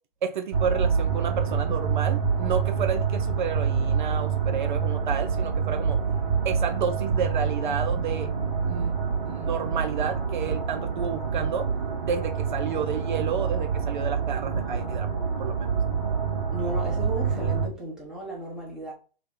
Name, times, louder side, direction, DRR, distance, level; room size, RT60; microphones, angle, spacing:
voice 1, 0.2-6.0 6.4-8.3 8.7-8.9 9.3-11.7 12.0-15.1 15.4-15.7, right 7 dB, 55° right, 0.5 m, -31 dB
sound 1, 0.5-17.7, right 6 dB, 40° right, 0.9 m, -27 dB
voice 2, 16.5-18.9, right 1 dB, ahead, 0.8 m, -35 dB
2.8 x 2.1 x 3.6 m
hypercardioid pair, 130°, 29 cm